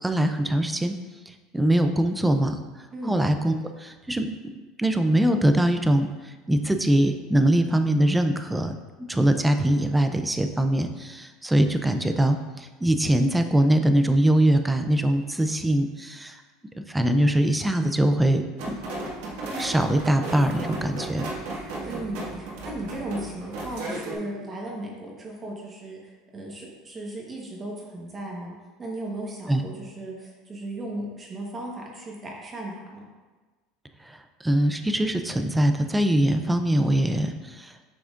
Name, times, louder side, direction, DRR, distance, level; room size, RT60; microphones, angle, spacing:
voice 1, 0.0-0.9 1.3-2.6 3.0-4.3 4.8-8.7 9.1-16.4 16.9-18.8 19.5-21.2 29.5-29.6 34.0-37.7, right 1 dB, 5° right, 7 dB, 0.4 m, -22 dB
sound 1, 18.6-24.2, right 2 dB, 75° right, 1.8 m, -35 dB
voice 2, 21.8-33.0, right 1 dB, 20° right, -1 dB, 1.2 m, -36 dB
8.6 x 6.0 x 2.5 m, 1.3 s
cardioid pair, 150°, 0 cm